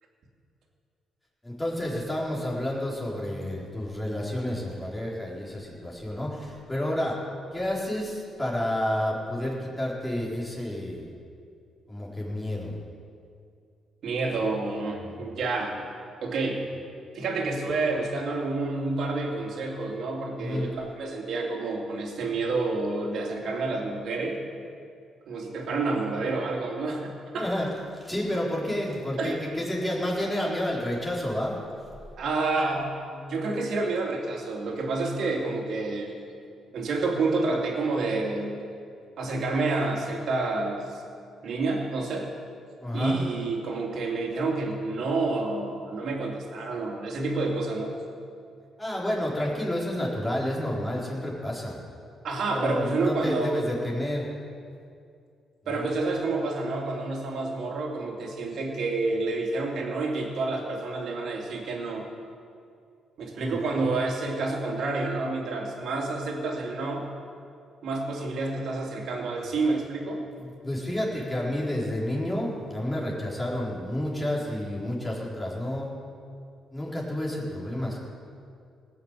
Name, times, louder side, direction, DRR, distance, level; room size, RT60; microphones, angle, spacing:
voice 1, 1.4-7.2 7.5-11.1 11.9-12.7 15.0-15.1 20.4-20.7 27.3-27.7 27.9-31.6 42.8-43.2 48.8-51.8 52.5-54.3 55.6-55.8 63.3-63.6 70.3-75.9 76.7-78.0, left 1 dB, 10° left, -5 dB, 4.2 m, -30 dB
voice 2, 14.0-15.9 16.2-16.6 17.1-24.4 25.3-27.5 29.2-29.4 32.2-36.1 36.7-38.6 39.2-40.9 41.4-42.3 42.9-47.9 52.2-53.7 55.7-62.1 63.2-67.0 67.8-70.2, right 3 dB, 65° right, 0 dB, 2.8 m, -29 dB
18.5 x 6.5 x 8.4 m, 2.4 s
cardioid pair, 90°, 0 cm